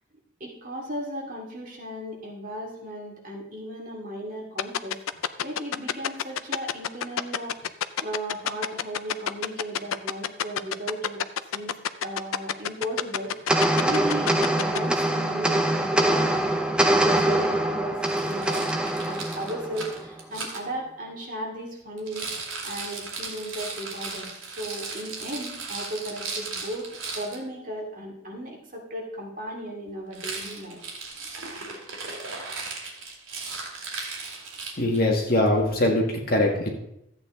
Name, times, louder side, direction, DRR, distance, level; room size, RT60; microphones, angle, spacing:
voice 1, 0.4-5.0 5.4-7.7 8.0-11.2 11.5-11.7 12.0-18.7 19.1-26.9 27.1-30.8, right 1 dB, 40° right, -2 dB, 2.5 m, -36 dB
sound 1, 4.6-14.8, left 9 dB, 90° left, 0.5 m, -26 dB
sound 2, 13.5-20.1, right 1 dB, 5° right, 0.7 m, -24 dB
Rattle, 18.0-20.6 22.0-27.4 30.1-35.1, right 4 dB, 75° right, 2.4 m, -36 dB
voice 2, 34.8-36.7, left 1 dB, 45° left, 1 dB, 1.9 m, -22 dB
13.5 x 8.4 x 3.8 m, 0.79 s
head